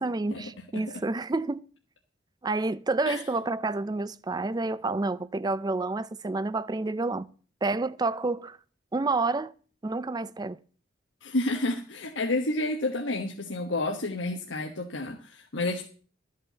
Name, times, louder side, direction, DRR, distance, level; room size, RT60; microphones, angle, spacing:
voice 1, 0.0-1.6 2.4-7.3 7.6-8.6 8.9-9.5 9.8-10.6, right 3 dB, 20° right, 0.4 m, -29 dB
voice 2, 11.2-15.9, left 2 dB, 90° left, 1.2 m, -30 dB
13.0 x 5.6 x 7.9 m
head